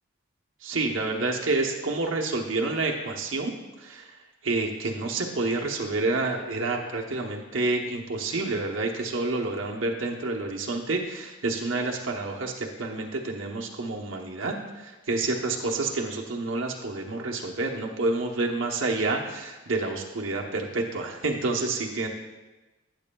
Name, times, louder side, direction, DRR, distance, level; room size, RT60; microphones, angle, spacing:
voice 1, 0.6-3.5 3.8-4.1 4.4-22.1, right 3 dB, 75° right, 0 dB, 0.9 m, -28 dB
14.0 x 8.0 x 2.3 m, 1.1 s
head